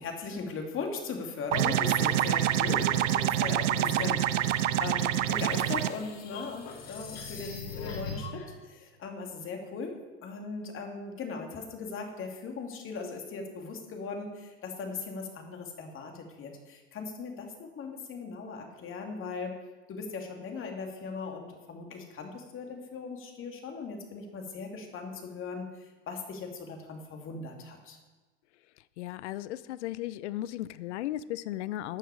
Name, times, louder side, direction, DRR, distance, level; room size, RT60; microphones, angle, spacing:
voice 1, 0.0-10.0 10.2-19.6 19.9-25.7 26.1-28.0, left 4 dB, 35° left, 3 dB, 2.6 m, -39 dB
sound 1, 1.5-5.9, right 12 dB, 75° right, 0.8 m, -26 dB
voice 2, 3.8-4.2 29.0-32.0, left 14 dB, 65° left, 17 dB, 0.7 m, -36 dB
sound 2, 4.9-8.4, left 4 dB, 50° left, 4.0 m, -41 dB
14.0 x 9.2 x 4.8 m, 1.3 s
hypercardioid pair, 95°, 37 cm